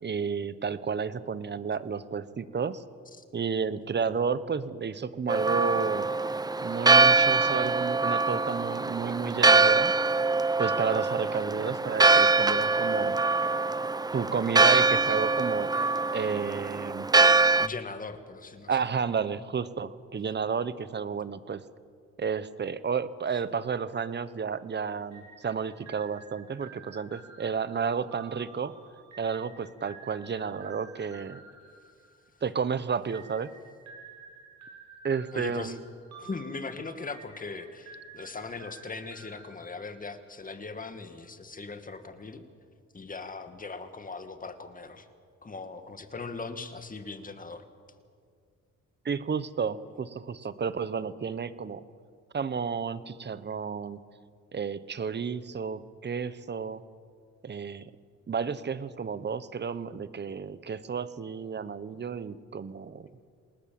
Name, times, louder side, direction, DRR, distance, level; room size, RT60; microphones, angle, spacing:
voice 1, 0.0-2.8 3.3-6.1 6.6-9.9 10.6-13.2 14.1-15.7 16.1-17.1 18.7-21.6 22.2-28.7 29.2-31.4 32.4-33.5 35.0-35.8 49.0-51.8 52.3-54.0 54.5-56.8 57.4-57.9 58.3-63.1, right 6 dB, 35° right, 15 dB, 1.1 m, -31 dB
Church bell, 5.3-17.7, right 3 dB, 15° right, 0.5 m, -23 dB
voice 2, 17.6-18.8 35.3-35.8 36.2-42.4 42.9-45.1 45.4-47.7, left 4 dB, 25° left, 8 dB, 2.2 m, -39 dB
sound 1, 25.1-32.5 33.1-40.3, right 4 dB, 65° right, 4.8 m, -51 dB
27.0 x 19.5 x 7.7 m, 2.2 s
cardioid pair, 90°, 30 cm